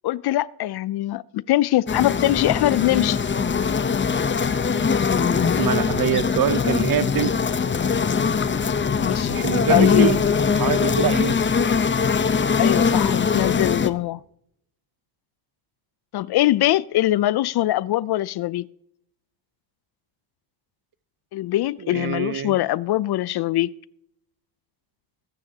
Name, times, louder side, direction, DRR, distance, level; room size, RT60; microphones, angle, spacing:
voice 1, 0.0-3.2 9.0-10.1 12.5-14.2 16.1-18.7 21.3-23.7, left 15 dB, 55° left, 0.5 m, -22 dB
sound 1, 1.9-13.9, left 6 dB, 25° left, 0.8 m, -21 dB
voice 2, 5.6-7.3 9.3-10.2 10.5-11.4 21.9-22.5, right 9 dB, 45° right, 0.8 m, -24 dB
21.0 x 9.6 x 2.8 m
cardioid pair, 85°, 49 cm